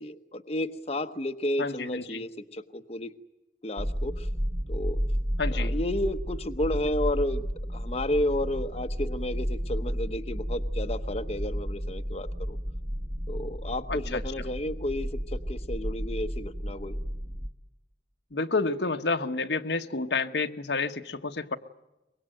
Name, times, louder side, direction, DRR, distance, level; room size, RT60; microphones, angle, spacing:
voice 1, 0.0-3.1 3.6-4.3 4.7-5.0 5.5-7.4 7.7-12.6 13.3-17.0, left 1 dB, 35° left, 6 dB, 1.0 m, -32 dB
voice 2, 1.6-2.2 5.4-5.7 13.9-14.2 18.3-21.6, left 3 dB, 70° left, 7 dB, 1.3 m, -29 dB
sound 1, 3.8-17.5, equal, 20° right, 1.4 m, -32 dB
24.5 x 22.0 x 9.1 m, 0.97 s
head